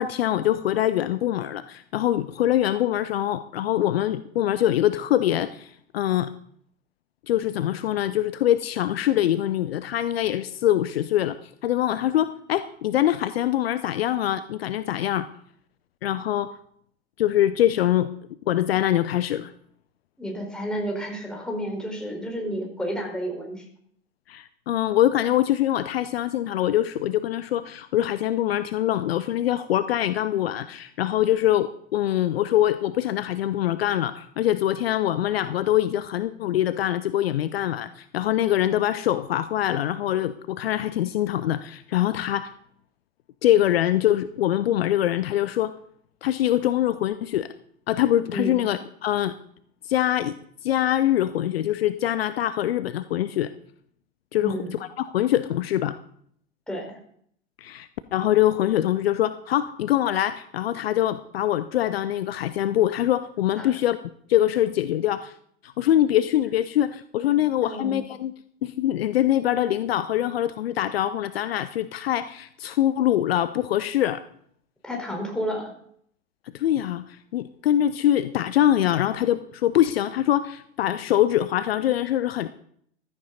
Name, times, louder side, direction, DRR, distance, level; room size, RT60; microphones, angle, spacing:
voice 1, 0.0-6.3 7.3-11.4 11.6-15.3 16.0-16.5 17.2-18.1 18.5-19.5 24.3-42.5 43.4-45.7 46.2-47.5 47.9-49.3 49.8-50.4 50.6-53.5 54.3-56.0 57.6-64.0 64.3-65.3 65.6-68.3 68.6-74.2 76.5-82.5, left 12 dB, 60° left, 13 dB, 0.7 m, -24 dB
voice 2, 20.2-23.6 48.3-48.6 54.4-54.7 56.7-57.0 63.6-63.7 67.2-68.0 74.8-75.7, equal, ahead, 0 dB, 4.5 m, -31 dB
15.0 x 13.5 x 4.0 m, 0.65 s
figure-of-eight pair, 85°, 35 cm